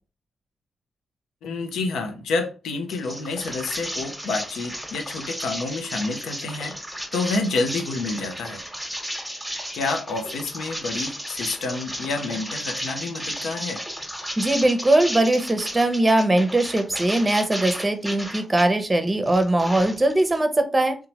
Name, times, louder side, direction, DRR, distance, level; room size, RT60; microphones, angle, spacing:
voice 1, 1.4-6.7 7.1-8.6 9.7-13.8, left 3 dB, 80° left, 0.5 m, -28 dB
sound 1, 2.9-18.7 19.1-20.4, equal, ahead, 1.1 m, -34 dB
voice 2, 14.4-20.9, right 1 dB, 25° right, 0.7 m, -20 dB
2.7 x 2.2 x 2.9 m
hypercardioid pair, 45°, 0 cm